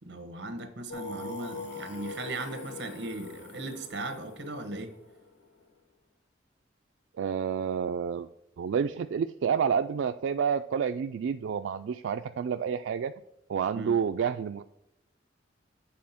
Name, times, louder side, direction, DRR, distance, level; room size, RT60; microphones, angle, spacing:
voice 1, 0.0-4.9 13.7-13.9, right 2 dB, 65° right, 8 dB, 1.2 m, -38 dB
Singing, 0.9-5.6, left 3 dB, 80° left, 1.5 m, -42 dB
voice 2, 7.2-8.3 8.6-13.1 13.5-14.6, right 7 dB, 85° right, 8 dB, 0.3 m, -29 dB
7.5 x 4.2 x 5.8 m, 0.83 s
head